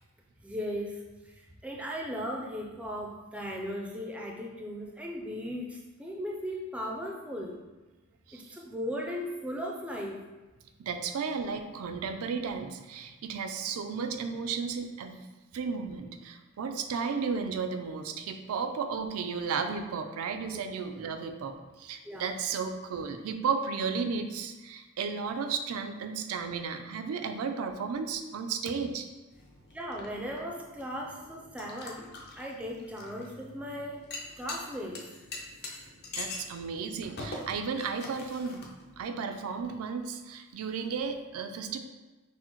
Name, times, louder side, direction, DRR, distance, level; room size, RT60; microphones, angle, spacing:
voice 1, 0.4-7.5 8.3-10.2 22.0-22.3 29.7-32.1 32.4-34.1 34.4-35.1, equal, 5° right, -1 dB, 0.4 m, -37 dB
voice 2, 10.8-15.2 15.5-29.1 36.2-38.7 39.0-41.8, right 5 dB, 75° right, 7 dB, 0.4 m, -34 dB
sound 1, 29.3-39.0, left 2 dB, 50° left, 0.6 m, -44 dB
6.0 x 2.0 x 3.0 m, 1.2 s
head